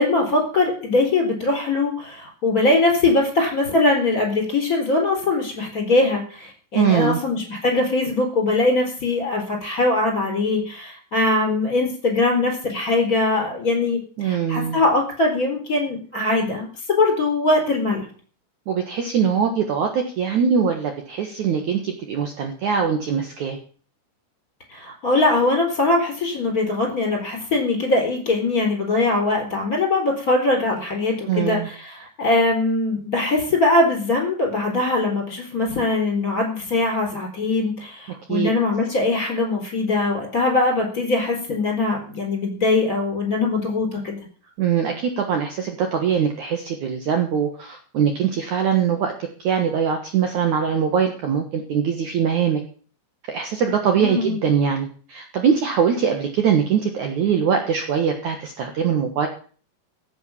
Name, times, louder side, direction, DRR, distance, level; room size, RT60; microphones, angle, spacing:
voice 1, 0.0-18.1 24.7-44.2 54.0-54.4, left 2 dB, 20° left, 1 dB, 3.9 m, -21 dB
voice 2, 6.7-7.2 14.2-14.8 18.7-23.6 31.3-31.7 38.3-38.5 44.6-49.1 49.4-52.6 53.3-59.3, right 7 dB, 80° right, 4 dB, 1.7 m, -22 dB
16.0 x 8.1 x 7.1 m, 0.43 s
omnidirectional pair, 5.6 m